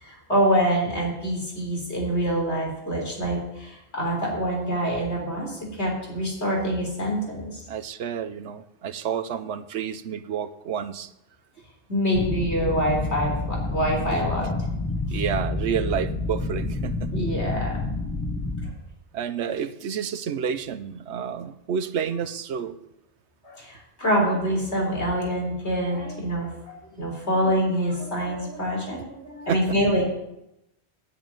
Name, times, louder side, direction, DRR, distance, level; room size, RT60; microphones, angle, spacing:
voice 1, 0.0-7.5 11.9-14.5 15.1-15.2 17.1-17.8 23.4-26.5 26.9-30.1, equal, 80° left, 0 dB, 4.2 m, -25 dB
voice 2, 7.7-11.1 14.1-14.2 15.1-17.1 19.1-22.8 29.5-29.8, right 8 dB, 85° right, 13 dB, 1.1 m, -30 dB
sound 1, 12.1-18.7, left 2 dB, 15° left, 1.0 m, -29 dB
9.9 x 8.6 x 9.1 m, 0.86 s
omnidirectional pair, 1.1 m